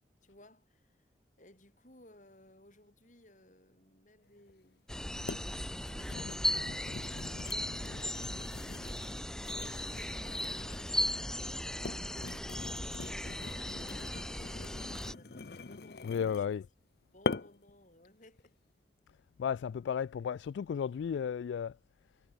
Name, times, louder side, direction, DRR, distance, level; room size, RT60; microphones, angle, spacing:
voice 1, 0.2-1.1 1.4-4.9 5.4-7.8 9.0-11.6 12.0-12.1 12.4-16.7 17.1-18.6, left 1 dB, 45° left, 7.2 m, -61 dB
sound 1, 4.5-4.6 5.3-5.5 5.8-11.0 11.6-16.5 17.2-17.7 18.2-18.5, left 3 dB, 60° left, 0.7 m, -43 dB
sound 2, 4.9-15.1, left 1 dB, 5° left, 1.4 m, -37 dB
sound 3, 8.2-15.5, equal, 25° left, 5.9 m, -57 dB
voice 2, 16.0-16.6 19.4-21.8, left 7 dB, 90° left, 0.3 m, -34 dB
head